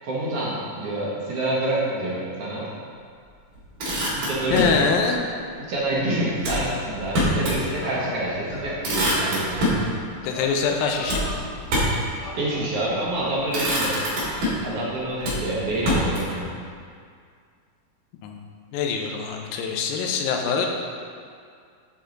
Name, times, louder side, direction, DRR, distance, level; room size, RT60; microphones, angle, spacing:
voice 1, 0.0-2.7 4.1-4.7 5.5-9.7 12.4-14.0 14.6-16.5, right 1 dB, 60° right, -6 dB, 1.7 m, -27 dB
Motor vehicle (road), 3.5-4.8 6.4-7.6 8.0-8.1 8.5-9.9 11.1-12.1 12.9-13.2 13.5-14.7 15.2-16.4, equal, 75° right, 4.0 m, -25 dB
voice 2, 4.5-5.3 10.2-11.2 18.2-18.4 18.7-20.7, left 5 dB, 85° left, 3 dB, 2.4 m, -24 dB
sound 1, 7.8-8.1 8.5-8.8 9.1-9.5 10.2-10.5 10.8-11.5 12.2-12.7, left 2 dB, 60° left, 1.6 m, -38 dB
11.5 x 4.5 x 3.9 m, 2.2 s
omnidirectional pair, 4.1 m